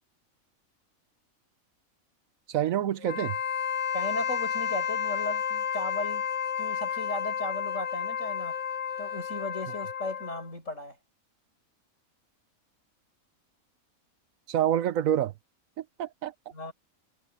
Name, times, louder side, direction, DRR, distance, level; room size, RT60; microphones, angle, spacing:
voice 1, 2.5-3.4 14.5-15.3 16.0-16.3, right 11 dB, 75° right, 1.1 m, -26 dB
Wind instrument woodwind instrument, 3.0-10.5, left 7 dB, 85° left, 1.5 m, -31 dB
voice 2, 3.9-6.3 6.6-8.6 9.0-11.0 16.5-16.7, left 2 dB, 60° left, 6.2 m, -36 dB
omnidirectional pair, 1.5 m